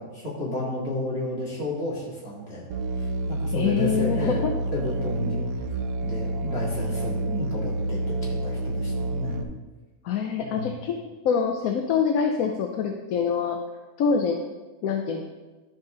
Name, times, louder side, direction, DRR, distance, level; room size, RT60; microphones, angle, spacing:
voice 1, 0.0-2.7 3.0-4.4 4.7-5.5 6.0-9.5 10.4-10.7, left 1 dB, 45° left, -6 dB, 2.6 m, -31 dB
Musical instrument, 2.7-9.4, right 1 dB, 80° right, 1.1 m, -29 dB
voice 2, 3.5-4.5 10.0-11.0 11.2-13.6 14.0-14.4 14.8-15.2, left 6 dB, 75° left, 4 dB, 1.1 m, -25 dB
11.5 x 5.5 x 3.8 m, 1.2 s
omnidirectional pair, 1.5 m